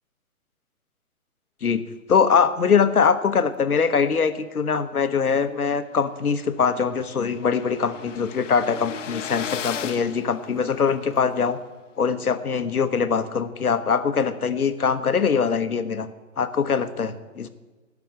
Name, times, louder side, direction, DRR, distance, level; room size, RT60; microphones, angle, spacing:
voice 1, 2.1-11.6 12.0-16.1 16.4-17.5, left 6 dB, 90° left, 11 dB, 1.1 m, -22 dB
sound 1, 5.6-5.7 6.0-6.1 6.3-11.2, left 8 dB, 60° left, 0.9 m, -36 dB
13.0 x 6.1 x 8.7 m, 1.3 s
hypercardioid pair, 140°, 43 cm